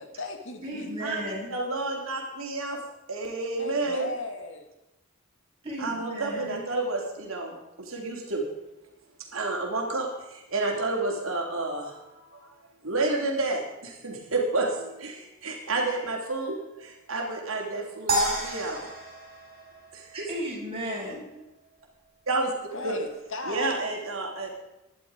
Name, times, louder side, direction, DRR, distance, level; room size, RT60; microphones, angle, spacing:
voice 1, 0.0-1.1 3.6-4.7 22.7-23.8, left 2 dB, 65° left, 6 dB, 2.0 m, -37 dB
voice 2, 0.6-1.5 5.6-6.6 20.1-21.2, equal, 25° right, -4 dB, 6.4 m, -34 dB
voice 3, 1.5-2.8 3.1-4.1 5.8-8.4 9.3-12.5 12.8-18.9 19.9-20.3 22.3-22.5 22.8-23.0 23.5-24.5, right 2 dB, 75° right, 0 dB, 3.2 m, -30 dB
sound 1, 18.1-20.5, right 1 dB, 45° right, 5.5 m, -30 dB
17.5 x 11.0 x 5.0 m, 0.97 s
head